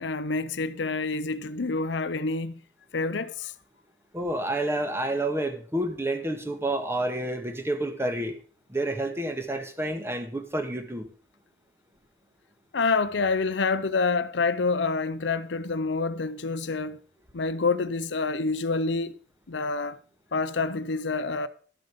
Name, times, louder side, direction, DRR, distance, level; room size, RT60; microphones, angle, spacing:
voice 1, 0.0-2.6 2.9-3.5 12.7-17.0 17.3-19.1 19.5-20.0 20.3-21.5, left 4 dB, 70° left, 0.7 m, -27 dB
voice 2, 4.1-8.4 8.7-11.1, right 1 dB, 15° right, 1.5 m, -29 dB
12.5 x 7.8 x 5.2 m
head